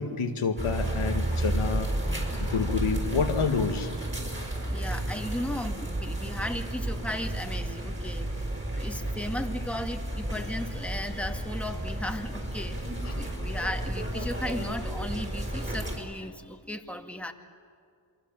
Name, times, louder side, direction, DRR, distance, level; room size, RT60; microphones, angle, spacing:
voice 1, 0.0-1.9 2.4-3.9 13.0-13.3, left 5 dB, 90° left, 5 dB, 1.9 m, -29 dB
sound 1, 0.6-16.0, right 1 dB, 25° right, 6.2 m, -32 dB
voice 2, 4.7-8.5 8.8-17.3, left 1 dB, 5° left, 4 dB, 2.1 m, -36 dB
28.0 x 23.5 x 7.4 m, 2.2 s
cardioid pair, 55°, 48 cm